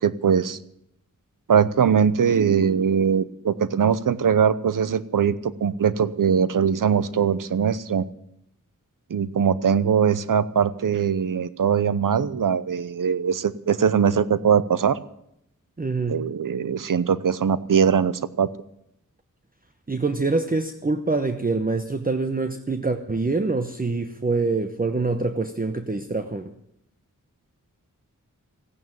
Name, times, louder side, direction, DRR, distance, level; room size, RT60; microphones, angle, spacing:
voice 1, 0.0-0.6 1.5-8.1 9.1-15.0 16.1-18.5, right 7 dB, 85° right, 16 dB, 0.8 m, -21 dB
voice 2, 15.8-16.2 19.9-26.5, right 3 dB, 25° right, 7 dB, 1.0 m, -25 dB
15.0 x 9.3 x 9.0 m, 0.77 s
wide cardioid pair, 65°, 32 cm